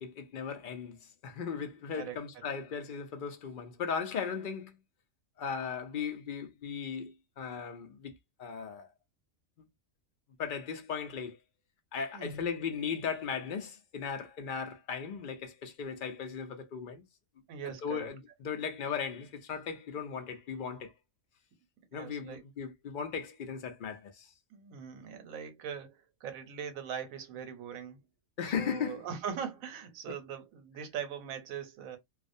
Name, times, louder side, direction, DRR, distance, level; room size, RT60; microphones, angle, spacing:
voice 1, 0.0-4.7 5.4-8.9 10.4-11.4 11.9-17.0 17.6-20.9 21.9-24.3 28.4-29.1, left 6 dB, 65° left, 0.5 m, -37 dB
voice 2, 12.1-12.5 17.5-18.1 21.9-22.4 24.5-28.0 28.4-32.0, right 7 dB, 80° right, 1.1 m, -41 dB
2.4 x 2.0 x 2.5 m
omnidirectional pair, 1.4 m